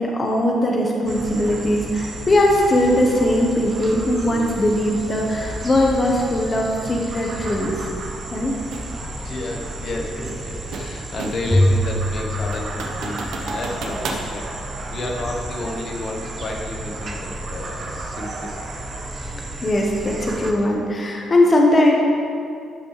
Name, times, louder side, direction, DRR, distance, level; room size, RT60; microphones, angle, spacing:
voice 1, 0.0-7.7 8.3-8.5 19.6-21.9, left 1 dB, 30° left, 0 dB, 1.1 m, -19 dB
sound 1, 1.0-20.5, right 2 dB, 45° right, 1.1 m, -32 dB
sound 2, 8.7-8.9 10.3-11.6 12.0-12.1 12.5-14.3, right 3 dB, 80° right, 1.0 m, -32 dB
voice 2, 9.2-14.5 14.9-18.6, left 2 dB, 55° left, 0 dB, 1.2 m, -31 dB
Bowed string instrument, 11.5-13.9, equal, 10° left, 0.6 m, -23 dB
12.5 x 6.0 x 3.3 m, 2.4 s
cardioid pair, 90°, 0 cm